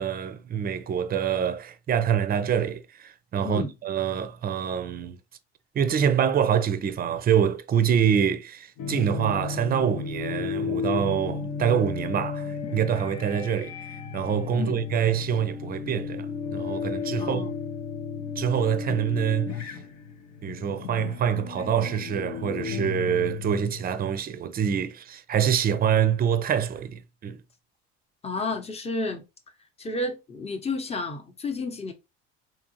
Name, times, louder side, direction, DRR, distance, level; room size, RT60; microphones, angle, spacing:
voice 1, 0.0-5.2 5.7-13.7 14.1-17.5 18.4-19.8 20.4-27.4, right 8 dB, 30° right, 0.5 m, -26 dB
voice 2, 3.4-3.7 14.5-14.8 17.2-17.5 28.2-29.2 29.8-31.9, left 3 dB, 20° left, 0.8 m, -31 dB
sound 1, 8.8-23.9, left 6 dB, 60° left, 0.7 m, -34 dB
3.5 x 2.8 x 2.9 m
hypercardioid pair, 80°, 31 cm